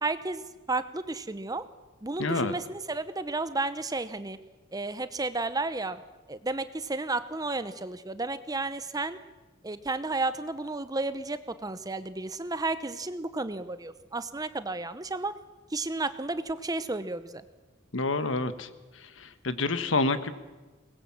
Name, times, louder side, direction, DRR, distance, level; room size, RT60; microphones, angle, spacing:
voice 1, 0.0-1.6 2.0-4.4 4.7-6.0 6.3-9.2 9.6-15.3 15.7-17.4, right 2 dB, 20° right, 13 dB, 0.8 m, -32 dB
voice 2, 2.2-2.5 17.9-18.7 19.0-20.3, left 3 dB, 75° left, 11 dB, 1.4 m, -28 dB
23.5 x 20.0 x 7.4 m, 1.2 s
head